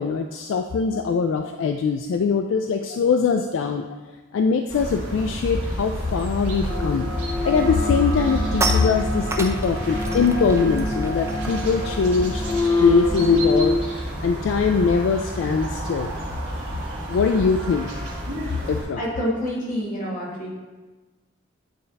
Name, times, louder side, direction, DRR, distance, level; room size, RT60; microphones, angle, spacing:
voice 1, 0.0-3.9 4.3-7.1 7.4-12.4 12.8-13.8 14.2-16.1 17.1-17.9 18.7-19.3, left 5 dB, 70° left, 6 dB, 0.3 m, -22 dB
sound 1, 4.7-18.8, equal, 70° right, 1.7 m, -30 dB
sound 2, 6.7-13.8, left 2 dB, 20° left, 0.8 m, -26 dB
sound 3, 8.2-13.8 14.1-14.3 14.6-19.6, right 2 dB, 15° right, 0.5 m, -35 dB
voice 2, 19.0-20.5, equal, 40° left, -5 dB, 1.9 m, -28 dB
9.0 x 3.3 x 4.0 m, 1.2 s
head